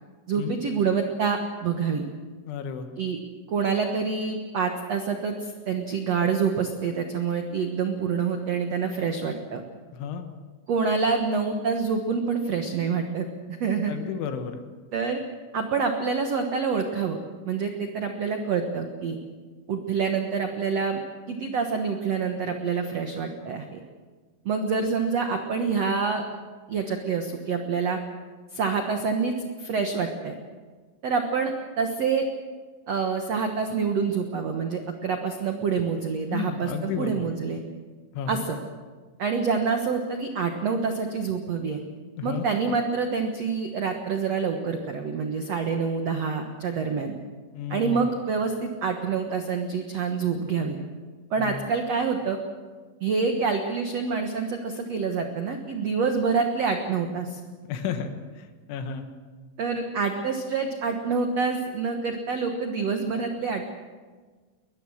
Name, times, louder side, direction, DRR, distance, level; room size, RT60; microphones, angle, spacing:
voice 1, 0.3-2.0 3.0-3.2 3.5-9.6 10.7-13.9 14.9-15.2 15.5-17.2 17.4-19.2 19.7-21.0 21.3-23.8 24.4-26.2 26.7-28.0 28.5-30.3 31.0-32.3 32.9-37.6 38.3-38.6 39.2-41.8 42.2-47.1 47.7-50.8 51.3-52.4 53.0-57.4 59.6-63.7, right 5 dB, 85° right, 4 dB, 1.4 m, -27 dB
voice 2, 2.5-2.9 9.9-10.3 13.9-14.6 36.3-37.3 38.1-38.5 42.2-42.5 47.5-48.1 51.4-51.7 57.7-58.1 58.4-59.1, left 7 dB, 90° left, 7 dB, 3.9 m, -32 dB
21.5 x 21.5 x 6.5 m, 1.4 s
omnidirectional pair, 5.2 m